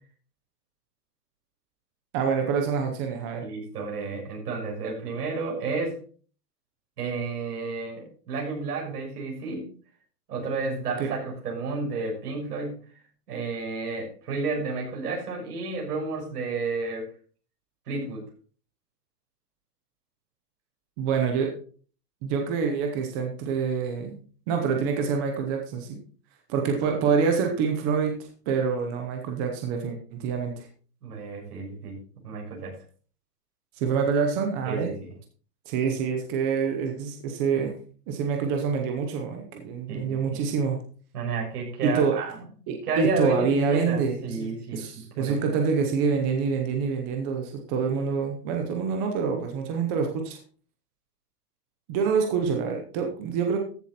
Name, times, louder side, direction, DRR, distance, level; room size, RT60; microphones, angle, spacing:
voice 1, 2.1-3.4 11.0-11.1 21.0-21.5 22.2-24.2 24.5-26.0 26.5-28.2 28.5-30.7 33.8-34.9 35.7-37.7 38.1-40.8 41.8-42.1 42.7-50.4 51.9-53.6, right 6 dB, 10° right, 3 dB, 0.7 m, -26 dB
voice 2, 3.4-6.0 7.0-9.7 10.3-12.8 13.3-17.1 17.9-18.2 31.0-32.0 32.2-32.8 34.6-35.1 39.9-40.4 41.1-42.4 42.9-45.4, right 4 dB, 70° right, -1 dB, 6.4 m, -31 dB
14.0 x 7.4 x 4.2 m, 0.41 s
supercardioid pair, 175°, 48 cm